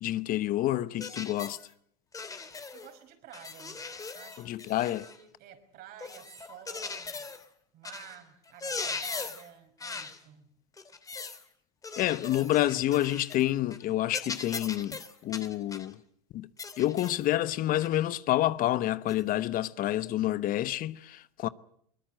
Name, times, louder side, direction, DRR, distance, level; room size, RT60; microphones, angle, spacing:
voice 1, 0.0-1.6 4.4-5.1 12.0-16.0 16.3-16.5 16.8-21.5, left 14 dB, 50° left, 1.0 m, -28 dB
sound 1, 1.0-1.6 2.1-2.9 3.3-5.2 6.0-7.5 7.8-8.2 8.5-9.5 9.8-10.2 10.8-11.4 11.8-13.4 13.7-13.8 14.1-15.9 16.6-17.2 17.8-18.0 19.1-19.2, left 4 dB, 20° left, 2.7 m, -39 dB
voice 2, 2.7-3.8 4.1-7.3 7.7-10.5, right 10 dB, 55° right, 5.3 m, -51 dB
22.5 x 21.0 x 7.7 m
supercardioid pair, 100°, 19 cm